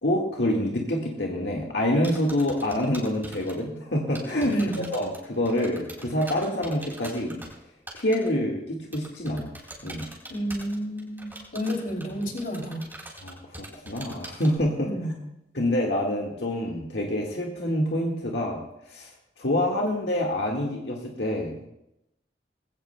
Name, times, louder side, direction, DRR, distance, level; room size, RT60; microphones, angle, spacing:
voice 1, 0.0-7.4 7.9-9.5 9.8-10.0 13.2-14.9 15.5-19.1 19.4-21.7, left 1 dB, 75° left, -1 dB, 1.7 m, -27 dB
sound 1, 2.0-3.5 4.1-7.5 7.9-8.3 8.9-14.6, right 1 dB, 10° right, 3.5 m, -42 dB
voice 2, 4.5-4.9 10.3-12.9 14.8-15.2, equal, 55° left, 1 dB, 2.7 m, -30 dB
20.0 x 16.5 x 2.2 m, 0.86 s
head